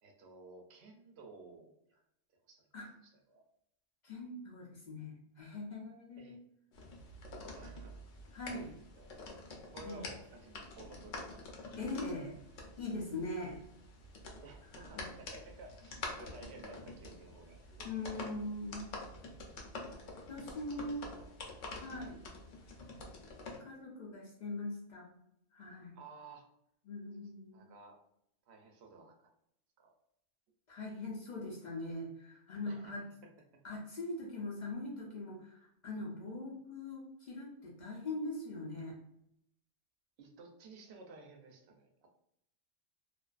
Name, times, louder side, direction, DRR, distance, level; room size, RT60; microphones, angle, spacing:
voice 1, 0.0-2.0 2.3-2.7 3.0-3.4 6.2-6.4 7.5-8.0 8.5-8.6 8.9-9.2 9.5-11.5 14.4-18.1 21.0-21.3 21.9-22.0 25.9-26.5 27.5-28.0 28.5-29.3 29.8-29.9 32.7-33.0 40.2-42.1, right 3 dB, 70° right, 3 dB, 0.8 m, -54 dB
voice 2, 4.0-6.4 8.3-8.7 9.8-10.0 11.8-12.4 12.8-13.6 14.8-15.1 17.8-18.9 20.3-21.0 21.7-22.2 23.6-25.1 25.5-26.0 26.8-27.7 30.7-33.0 33.6-39.0, left 2 dB, 55° left, -3 dB, 0.5 m, -42 dB
sound 1, 6.7-23.6, left 2 dB, 80° left, 0.9 m, -48 dB
2.4 x 2.3 x 2.3 m, 0.76 s
omnidirectional pair, 1.2 m